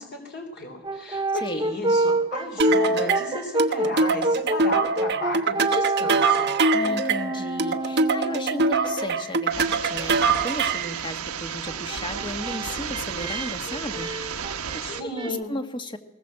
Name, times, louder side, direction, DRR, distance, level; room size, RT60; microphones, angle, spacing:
voice 1, 0.0-6.5 15.0-15.5, left 2 dB, 50° left, 2 dB, 3.3 m, -34 dB
Brass instrument, 0.8-9.2 11.7-15.3, right 2 dB, 20° right, 0.6 m, -28 dB
sound 1, 2.6-10.9, right 3 dB, 50° right, 1.0 m, -23 dB
voice 2, 6.7-16.0, left 1 dB, 20° left, 7 dB, 1.6 m, -35 dB
sound 2, 9.5-15.0, right 7 dB, 80° right, 1.3 m, -33 dB
20.5 x 19.5 x 7.6 m, 0.98 s
head